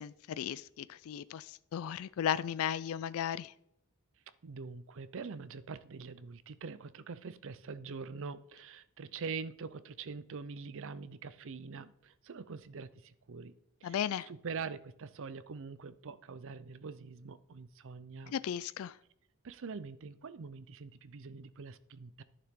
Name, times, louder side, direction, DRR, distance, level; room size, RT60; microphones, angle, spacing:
voice 1, 0.0-3.5 13.8-14.3 18.3-19.0, left 9 dB, 70° left, 17 dB, 0.3 m, -35 dB
voice 2, 4.4-13.5 13.8-18.3 19.4-22.2, right 5 dB, 65° right, 16 dB, 0.6 m, -44 dB
11.5 x 6.9 x 3.7 m, 0.81 s
head